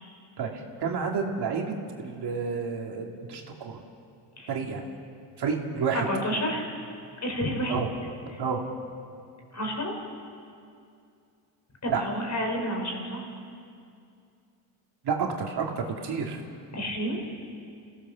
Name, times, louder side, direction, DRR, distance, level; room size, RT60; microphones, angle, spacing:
voice 1, 0.4-3.8 4.5-4.8 5.4-6.1 7.7-7.9 8.4-8.6 11.9-12.0 15.0-16.4, right 5 dB, 55° right, 1 dB, 2.6 m, -30 dB
voice 2, 5.9-6.7 7.2-7.8 9.5-10.0 11.8-13.4 16.7-17.2, equal, 35° left, 1 dB, 5.0 m, -30 dB
26.5 x 16.0 x 6.9 m, 2.4 s
cardioid pair, 90°, 48 cm